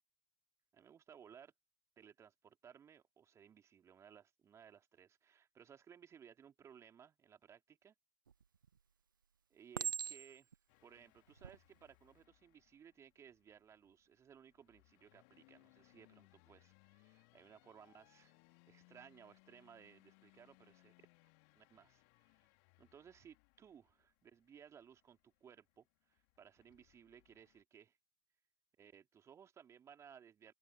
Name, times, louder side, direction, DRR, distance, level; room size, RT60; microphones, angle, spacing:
voice 1, 0.7-1.5 2.0-7.9 9.5-10.5 10.8-18.3 18.7-20.9 21.5-22.5 22.8-28.0 28.8-30.5, right 8 dB, 25° right, 3.1 m, -61 dB
Chink clink, 8.3-8.8 9.7-10.5 11.3-11.6, right 7 dB, 75° right, 1.1 m, -41 dB
sound 1, 10.7-27.6, left 39 dB, 50° left, 3.2 m, -71 dB
open air
figure-of-eight pair, 80°, 11 cm